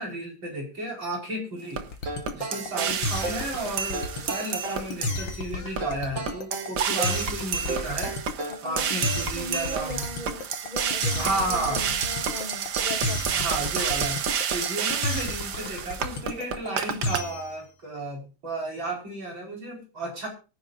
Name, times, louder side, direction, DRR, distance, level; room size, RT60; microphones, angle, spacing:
voice 1, 0.0-1.8 2.3-8.1 8.6-10.1 11.2-11.9 13.3-14.2 14.5-20.3, right 2 dB, 80° right, -1 dB, 5.8 m, -33 dB
sound 1, 1.8-1.9 2.3-5.3 5.8-5.9 6.3-17.2, right 7 dB, 65° right, 1.6 m, -30 dB
sound 2, 1.9-17.6, left 3 dB, 85° left, 2.4 m, -32 dB
sound 3, 2.1-3.5 3.9-4.9 5.8-7.3 7.7-8.7, right 3 dB, 45° right, 2.1 m, -35 dB
voice 2, 2.5-3.0 8.5-13.7, left 1 dB, 25° left, 3 dB, 2.3 m, -38 dB
24.0 x 10.5 x 2.5 m, 0.31 s
omnidirectional pair, 2.0 m